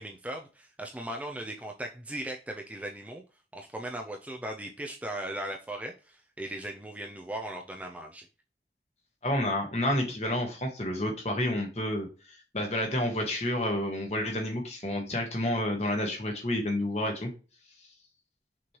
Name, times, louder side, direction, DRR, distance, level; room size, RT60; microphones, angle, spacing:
voice 1, 0.0-3.2 3.5-8.3, right 1 dB, 10° right, 2 dB, 0.4 m, -38 dB
voice 2, 9.2-17.3, left 1 dB, 40° left, 2 dB, 1.2 m, -30 dB
6.0 x 3.1 x 2.9 m, 0.34 s
head